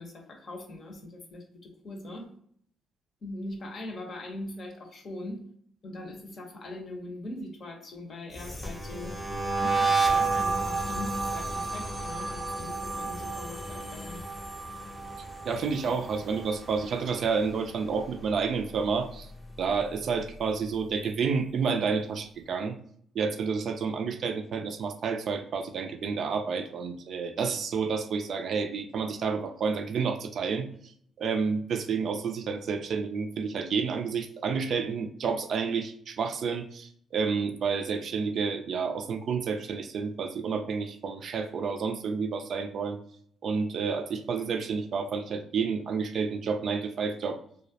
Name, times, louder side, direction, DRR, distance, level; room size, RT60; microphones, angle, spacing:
voice 1, 0.0-2.3 3.2-5.4 5.8-9.2 9.6-14.2, left 1 dB, 55° left, 2 dB, 0.7 m, -41 dB
sound 1, 8.3-17.5 17.8-18.2 18.5-20.1, right 3 dB, 10° left, 0.6 m, -31 dB
voice 2, 15.5-19.3 19.6-22.8 23.1-30.7 31.2-43.0 43.4-47.4, right 5 dB, 60° right, 6 dB, 0.3 m, -30 dB
2.3 x 2.1 x 2.7 m, 0.64 s
supercardioid pair, 55°, 0 cm